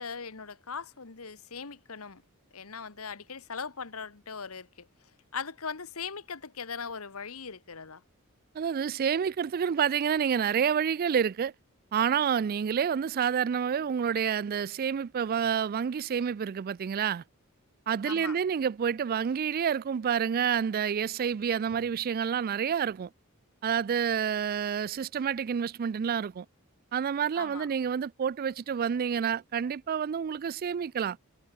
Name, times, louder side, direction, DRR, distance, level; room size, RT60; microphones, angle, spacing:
voice 1, 0.0-2.2 2.5-4.9 5.3-8.0 18.0-18.4 27.3-27.7, left 5 dB, 75° left, 1.5 m, -39 dB
voice 2, 8.5-11.5 11.9-17.2 17.9-23.1 23.6-26.5 26.9-31.2, right 7 dB, 45° right, 0.3 m, -28 dB
head